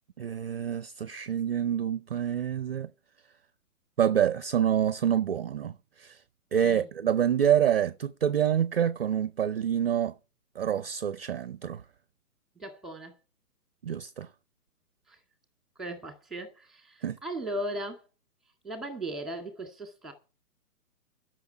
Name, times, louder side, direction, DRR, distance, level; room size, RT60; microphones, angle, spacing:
voice 1, 0.2-2.9 4.0-6.2 6.5-10.1 10.6-11.8 13.8-14.3 17.0-17.2, right 9 dB, 40° right, 0.6 m, -27 dB
voice 2, 12.6-13.1 15.1-15.2 15.8-18.0 18.6-20.1, right 1 dB, ahead, 1.9 m, -37 dB
11.5 x 6.4 x 8.9 m
figure-of-eight pair, 140°, 46 cm